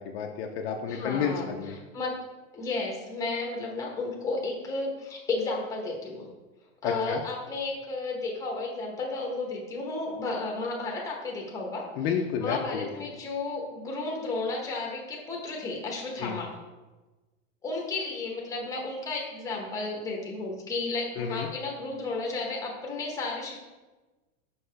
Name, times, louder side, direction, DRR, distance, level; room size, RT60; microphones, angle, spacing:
voice 1, 0.0-1.8 6.8-7.2 12.0-13.1 16.2-16.4 21.2-21.5, left 7 dB, 50° left, 2 dB, 0.6 m, -31 dB
voice 2, 0.8-1.5 1.9-2.2 2.5-6.3 6.8-11.8 12.4-16.5 17.6-23.6, left 3 dB, 10° left, -1 dB, 0.9 m, -33 dB
5.6 x 5.5 x 3.3 m, 1.2 s
supercardioid pair, 150°, 40 cm